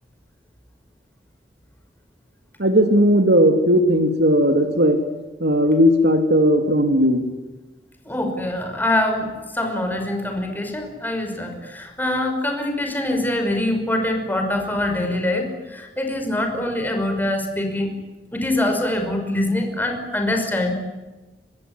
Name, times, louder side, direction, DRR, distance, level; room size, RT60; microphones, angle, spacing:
voice 1, 2.6-5.0 5.4-7.3, equal, 65° right, 6 dB, 2.8 m, -17 dB
voice 2, 8.1-17.9 18.3-20.7, left 1 dB, 10° left, 4 dB, 5.7 m, -24 dB
25.5 x 21.5 x 9.8 m, 1.1 s
head